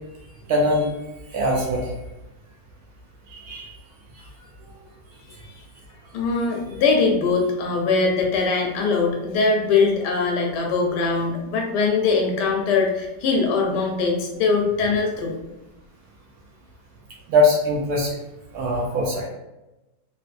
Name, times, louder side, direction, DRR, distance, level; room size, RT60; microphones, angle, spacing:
voice 1, 0.5-0.9 1.3-1.9 3.3-3.7 17.3-18.1 18.5-19.3, left 1 dB, 70° right, -1 dB, 1.0 m, -21 dB
voice 2, 5.3-5.6 6.1-15.3, left 4 dB, 75° left, 1 dB, 1.2 m, -22 dB
3.2 x 2.7 x 2.5 m, 0.99 s
omnidirectional pair, 1.9 m